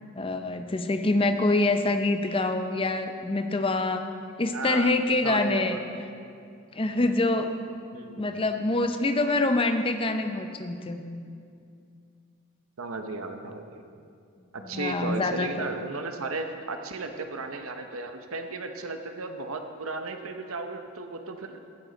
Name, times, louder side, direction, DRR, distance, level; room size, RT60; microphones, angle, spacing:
voice 1, 0.2-4.1 4.4-5.8 6.7-7.5 8.1-11.0 14.6-15.7, left 2 dB, 25° left, 7 dB, 0.6 m, -25 dB
voice 2, 4.5-4.9 5.2-5.8 7.9-8.4 12.8-13.8 14.5-21.6, right 3 dB, 70° right, 6 dB, 0.8 m, -35 dB
15.5 x 9.4 x 3.9 m, 2.4 s
head